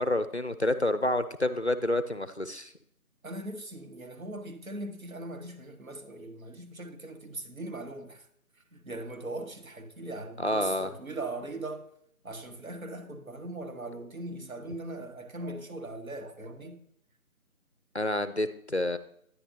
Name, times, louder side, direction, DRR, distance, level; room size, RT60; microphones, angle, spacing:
voice 1, 0.0-2.7 10.4-10.9 17.9-19.0, left 1 dB, 50° left, 0.5 m, -28 dB
voice 2, 3.2-8.3 8.5-11.9 12.2-16.8, right 2 dB, 65° right, 1.5 m, -40 dB
9.9 x 9.5 x 2.8 m
figure-of-eight pair, 165°, 44 cm